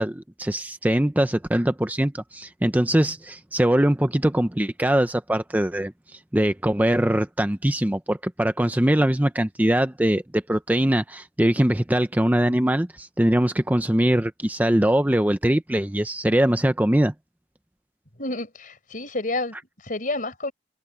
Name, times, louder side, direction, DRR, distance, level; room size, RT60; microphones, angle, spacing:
voice 1, 0.0-17.1, right 1 dB, 10° right, 0.6 m, -22 dB
voice 2, 18.2-20.5, left 2 dB, 50° left, 4.6 m, -30 dB
head